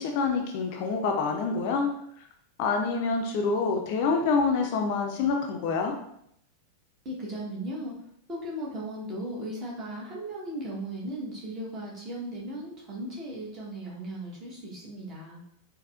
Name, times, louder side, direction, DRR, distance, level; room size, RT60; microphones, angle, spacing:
voice 1, 0.0-1.9 2.6-5.9, left 4 dB, 45° left, 2 dB, 0.4 m, -26 dB
voice 2, 7.0-7.9 8.3-15.4, right 1 dB, 30° right, -4 dB, 1.0 m, -37 dB
4.0 x 2.1 x 2.4 m, 0.71 s
figure-of-eight pair, 90°, 0 cm